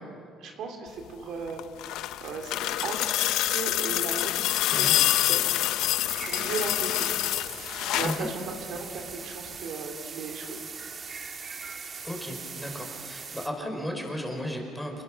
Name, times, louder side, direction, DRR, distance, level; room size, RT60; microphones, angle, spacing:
voice 1, 0.4-1.6 2.2-5.6 6.2-7.1 7.9-10.6, right 4 dB, 70° right, 3 dB, 3.1 m, -37 dB
sound 1, 1.5-8.3 9.5-9.6, left 14 dB, 80° left, 0.7 m, -26 dB
sound 2, 6.1-13.5, right 5 dB, 35° right, 1.5 m, -40 dB
voice 2, 12.0-15.0, equal, 5° left, 1 dB, 4.8 m, -34 dB
28.0 x 19.5 x 6.2 m, 2.4 s
cardioid pair, 110°, 0 cm